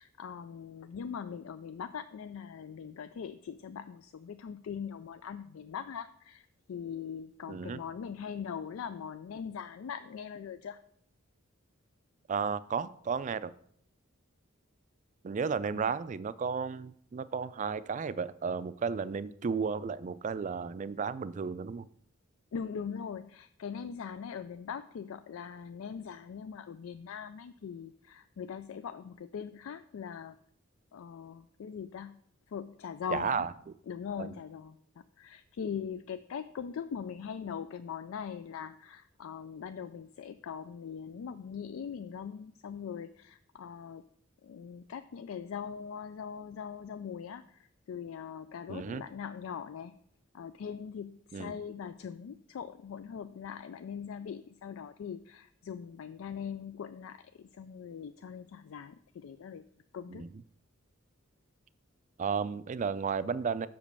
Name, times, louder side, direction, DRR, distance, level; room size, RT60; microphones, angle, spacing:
voice 1, 0.0-10.8 15.7-15.8 22.5-30.4 30.9-32.2 32.5-33.5 33.9-44.0 44.4-50.0 50.3-59.6 59.9-60.2, left 7 dB, 80° left, 11 dB, 0.4 m, -41 dB
voice 2, 7.5-7.8 12.3-13.5 15.2-21.9 33.1-33.5 34.2-34.4 48.7-49.0 51.3-51.5 60.1-60.4 62.2-63.7, right 5 dB, 35° right, 15 dB, 0.3 m, -33 dB
6.0 x 5.1 x 6.8 m, 0.65 s
head